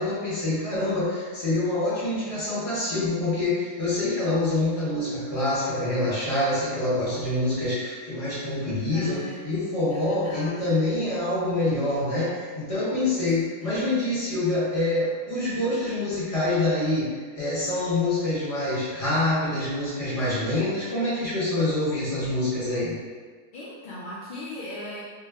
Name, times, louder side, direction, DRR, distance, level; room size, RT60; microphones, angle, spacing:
voice 1, 0.0-17.1 17.4-23.0, left 2 dB, 25° left, -10 dB, 1.1 m, -26 dB
voice 2, 8.9-10.7 13.6-13.7 23.5-25.0, left 1 dB, 60° left, -9 dB, 0.5 m, -39 dB
3.3 x 2.1 x 3.5 m, 1.5 s
omnidirectional pair, 1.5 m